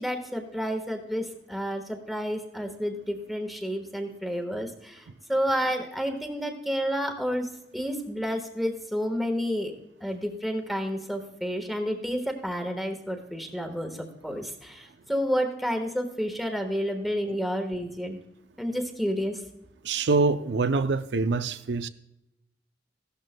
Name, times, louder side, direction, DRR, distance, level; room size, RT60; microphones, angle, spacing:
voice 1, 0.0-7.5 7.7-9.7 10.0-18.2 18.6-19.4, equal, ahead, 1.3 m, -30 dB
voice 2, 19.8-21.9, right 3 dB, 80° right, 0.5 m, -25 dB
15.5 x 12.5 x 2.2 m
head